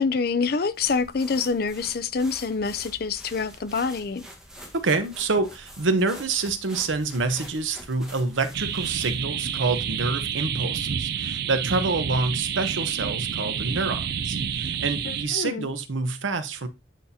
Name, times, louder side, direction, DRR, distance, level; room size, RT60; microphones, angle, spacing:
voice 1, 0.0-4.2 15.0-15.7, left 4 dB, 50° left, 0.4 m, -26 dB
sound 1, 0.7-9.3, equal, 5° right, 1.2 m, -46 dB
voice 2, 4.7-16.7, right 3 dB, 90° right, 0.9 m, -27 dB
sound 2, 8.5-15.2, right 7 dB, 55° right, 0.4 m, -29 dB
8.9 x 4.1 x 2.7 m
head